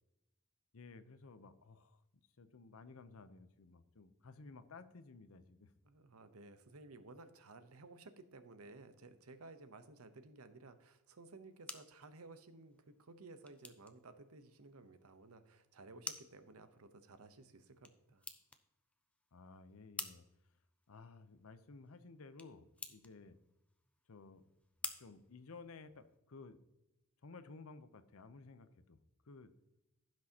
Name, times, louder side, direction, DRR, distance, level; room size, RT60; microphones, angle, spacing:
voice 1, 0.7-2.0 2.4-5.7 19.3-20.2 20.9-23.4 24.1-24.4 25.0-26.6 27.2-29.0 29.2-29.5, left 3 dB, 75° left, 12 dB, 0.7 m, -55 dB
voice 2, 5.8-18.2, right 3 dB, 85° right, 10 dB, 0.9 m, -56 dB
sound 1, 11.2-26.2, left 2 dB, 5° left, 0.5 m, -53 dB
15.5 x 6.2 x 2.9 m, 0.91 s
head